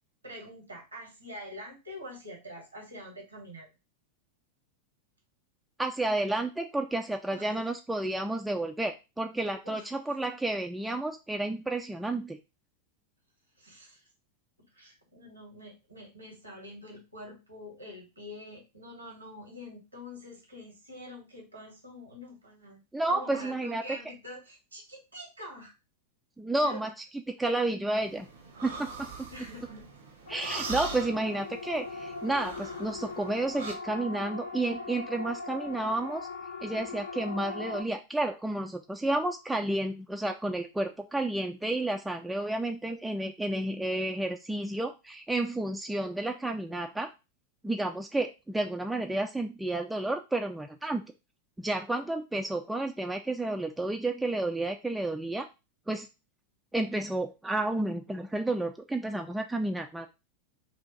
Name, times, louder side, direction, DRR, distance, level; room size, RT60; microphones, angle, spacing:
voice 1, 0.2-3.7 7.3-7.5 9.6-9.9 13.6-14.1 14.7-22.8 23.1-25.7 26.6-26.9 29.3-29.9, left 1 dB, 85° right, 0 dB, 1.3 m, -45 dB
voice 2, 5.8-12.4 22.9-23.8 26.4-26.9 27.3-28.3 28.6-29.3 30.3-36.3 36.6-47.1 47.6-51.0 51.6-55.5 55.9-56.1 56.7-60.1, right 2 dB, 5° right, 4 dB, 0.3 m, -31 dB
sound 1, 28.0-33.7, right 4 dB, 65° right, 0.8 m, -42 dB
Siren, 30.3-37.8, left 3 dB, 65° left, 0.6 m, -40 dB
2.7 x 2.5 x 3.7 m, 0.27 s
figure-of-eight pair, 90°, 0 cm